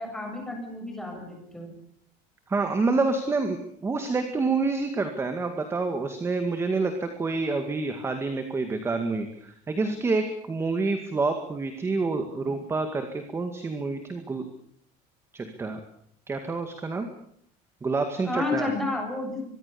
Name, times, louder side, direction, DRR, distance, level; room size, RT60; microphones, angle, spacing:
voice 1, 0.0-1.7 12.5-12.6 18.2-19.4, left 2 dB, 5° left, 2 dB, 7.5 m, -31 dB
voice 2, 2.5-14.5 15.3-15.8 16.3-17.1 17.8-18.7, right 3 dB, 15° right, 7 dB, 2.1 m, -28 dB
25.0 x 22.5 x 7.1 m, 0.68 s
cardioid pair, 165°, 18 cm